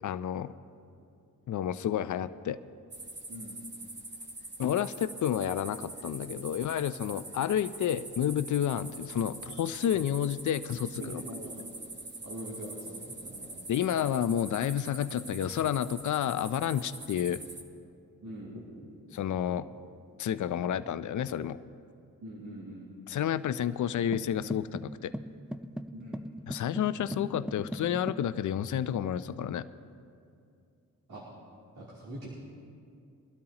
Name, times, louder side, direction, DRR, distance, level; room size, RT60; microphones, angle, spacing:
voice 1, 0.0-0.5 1.5-2.6 4.6-11.2 13.7-17.4 19.1-19.7 20.2-21.6 23.1-25.1 26.5-29.7, left 10 dB, 60° left, 13 dB, 0.6 m, -30 dB
sound 1, 2.9-17.6, right 2 dB, 30° right, 1.6 m, -44 dB
voice 2, 3.3-3.6 11.0-11.6 12.2-13.6 18.2-18.9 22.2-22.9 25.9-26.2 31.1-31.2 31.7-32.3, right 1 dB, 70° right, -7 dB, 3.2 m, -43 dB
sound 2, 24.1-28.3, equal, 5° right, 0.4 m, -40 dB
23.5 x 12.5 x 2.9 m, 2.4 s
cardioid pair, 85°, 33 cm